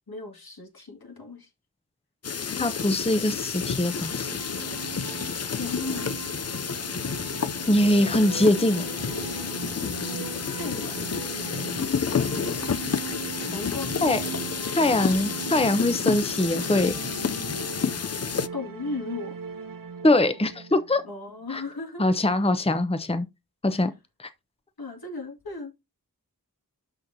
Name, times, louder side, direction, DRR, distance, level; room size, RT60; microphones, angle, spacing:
voice 1, 0.1-1.5 5.5-6.2 10.5-11.2 12.1-13.0 13.5-14.0 18.5-19.4 21.0-22.2 23.7-23.9 24.8-25.7, left 3 dB, 75° left, 2.1 m, -36 dB
sound 1, 2.2-18.5, left 6 dB, 45° left, 0.4 m, -30 dB
voice 2, 2.6-4.3 7.7-8.8 14.0-14.2 14.8-16.9 20.0-21.0 21.5-21.6 22.0-23.3 23.6-23.9 24.2-24.3, left 1 dB, 15° left, 0.7 m, -22 dB
sound 2, 3.7-21.6, right 6 dB, 65° right, 0.9 m, -39 dB
12.5 x 4.3 x 2.7 m
wide cardioid pair, 55°, 37 cm